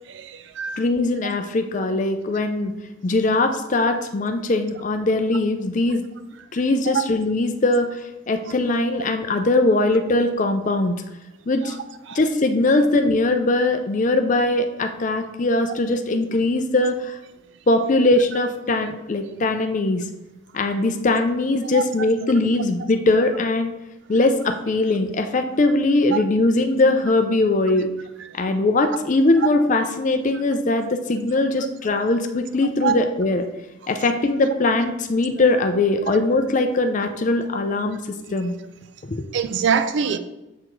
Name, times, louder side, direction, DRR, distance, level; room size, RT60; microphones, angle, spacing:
voice 1, 0.1-0.8 9.0-9.1 11.6-11.7 12.1-12.2 21.7-21.8 26.1-26.2 32.8-32.9 39.3-40.2, right 6 dB, 60° right, 0.3 m, -24 dB
voice 2, 0.8-2.7 3.0-6.0 6.5-11.0 11.5-11.7 12.1-17.2 17.7-20.0 20.5-23.7 24.1-27.9 28.3-33.4 33.9-38.0 38.3-38.5 39.0-39.3, left 2 dB, 35° left, 0.4 m, -21 dB
7.4 x 4.6 x 3.9 m
head